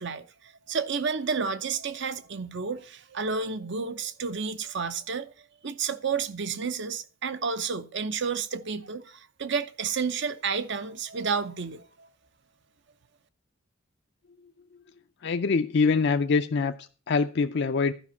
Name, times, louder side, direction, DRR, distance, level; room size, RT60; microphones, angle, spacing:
voice 1, 0.0-5.3 5.6-12.1, right 5 dB, 60° right, 0.8 m, -31 dB
voice 2, 15.2-17.9, left 4 dB, 55° left, 0.5 m, -24 dB
12.0 x 5.2 x 7.0 m
head